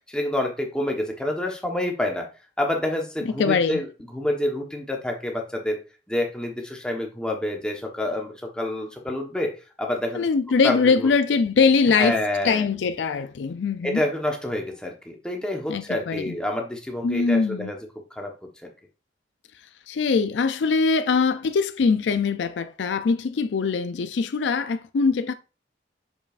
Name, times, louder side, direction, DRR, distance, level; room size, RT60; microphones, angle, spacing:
voice 1, 0.1-2.3 2.6-3.9 4.1-5.8 6.1-9.5 9.8-10.3 10.6-11.1 12.0-12.7 13.8-17.8 18.2-18.3, left 1 dB, 5° left, 1.1 m, -27 dB
voice 2, 3.4-3.8 10.1-14.0 15.7-16.4 17.0-17.7 19.9-25.3, left 5 dB, 90° left, 0.4 m, -22 dB
6.9 x 5.5 x 2.5 m
head